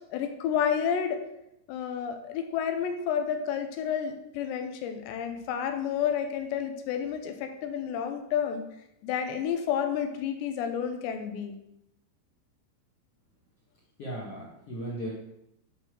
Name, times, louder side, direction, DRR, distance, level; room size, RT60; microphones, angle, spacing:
voice 1, 0.1-1.2 1.7-8.6 9.0-11.6, left 8 dB, 85° left, 6 dB, 3.2 m, -30 dB
voice 2, 14.0-15.1, right 1 dB, 50° left, -5 dB, 1.9 m, -36 dB
10.5 x 4.5 x 6.3 m, 0.83 s
omnidirectional pair, 4.9 m